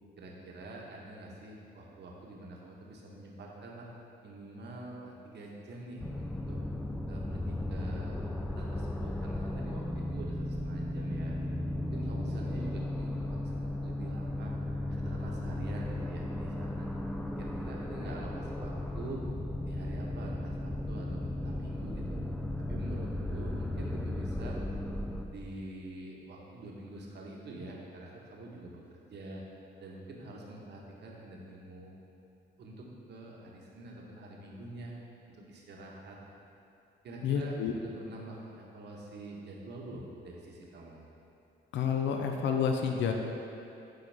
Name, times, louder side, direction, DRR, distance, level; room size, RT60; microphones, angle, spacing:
voice 1, 0.2-3.9 4.2-6.6 7.1-8.2 8.5-11.3 11.8-14.5 14.9-16.9 17.2-19.2 19.6-22.2 22.6-24.6 25.3-29.4 29.8-31.9 32.6-34.9 35.3-36.2 37.0-41.1, right 2 dB, 60° right, -2 dB, 1.1 m, -46 dB
sound 1, 6.0-25.3, left 1 dB, 5° left, 0.3 m, -35 dB
voice 2, 37.2-37.7 41.7-43.1, left 7 dB, 70° left, 3 dB, 0.5 m, -29 dB
8.9 x 4.0 x 3.4 m, 2.7 s
cardioid pair, 90°, 20 cm